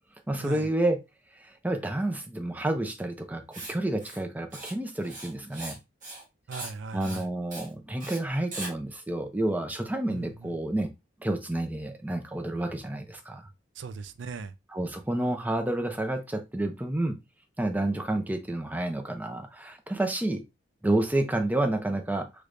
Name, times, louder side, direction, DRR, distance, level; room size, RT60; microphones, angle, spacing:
voice 1, 0.3-1.0 1.6-5.8 6.9-10.9 11.2-13.4 14.7-17.2 17.6-20.4 20.8-22.3, right 1 dB, 10° right, 0.5 m, -29 dB
Writing, 3.5-3.7 4.0-4.2 4.5-4.7 5.0-5.8 6.0-6.2 6.5-6.7 7.0-7.2 7.5-7.7 8.0-8.2 8.5-8.7, right 2 dB, 45° right, 1.1 m, -40 dB
voice 2, 6.5-7.3 10.1-10.5 13.8-14.5, right 4 dB, 70° right, 0.4 m, -39 dB
3.3 x 3.1 x 2.4 m
head